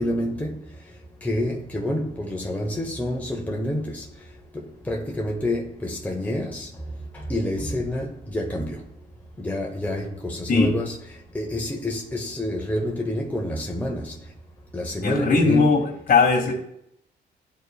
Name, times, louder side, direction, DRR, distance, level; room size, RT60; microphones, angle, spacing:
voice 1, 0.0-8.9 9.4-11.0 11.3-14.3 14.7-15.7, left 1 dB, 10° left, 0.9 m, -28 dB
voice 2, 15.0-16.5, left 4 dB, 55° left, 1.9 m, -19 dB
11.0 x 4.1 x 2.3 m
cardioid pair, 90°, 18 cm